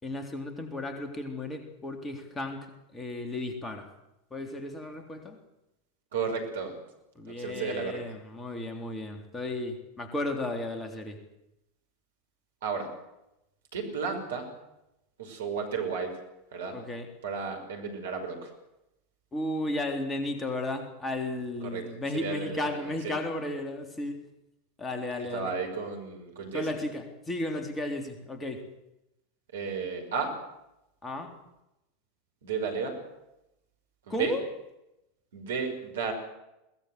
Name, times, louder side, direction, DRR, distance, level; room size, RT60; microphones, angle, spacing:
voice 1, 0.0-2.7 2.9-3.9 4.3-5.4 7.2-11.2 16.7-17.1 19.3-24.2 24.8-25.5 26.5-28.6 31.0-31.3 34.1-34.4, left 2 dB, 15° left, 5 dB, 3.6 m, -34 dB
voice 2, 6.1-6.7 7.3-7.9 12.6-12.9 13.7-14.5 15.2-16.1 16.5-16.8 17.2-18.5 21.6-21.8 22.1-23.1 25.3-26.7 29.5-30.3 32.4-33.0 34.1-34.3 35.3-36.1, right 5 dB, 65° right, 4 dB, 5.8 m, -33 dB
22.0 x 19.0 x 8.1 m, 0.89 s
figure-of-eight pair, 85°, 0 cm